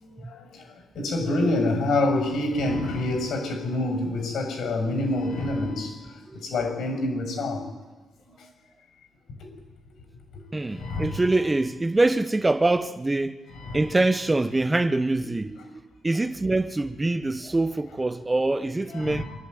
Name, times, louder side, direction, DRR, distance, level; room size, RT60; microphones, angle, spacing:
voice 1, 0.9-5.9 6.3-7.7 10.7-11.2 13.5-13.9 18.9-19.2, left 2 dB, 70° left, 6.5 m, -27 dB
voice 2, 10.5-13.4 13.7-15.6 16.0-19.2, right 2 dB, 15° right, 0.9 m, -24 dB
26.0 x 12.0 x 9.5 m
cardioid pair, 90°, 0 cm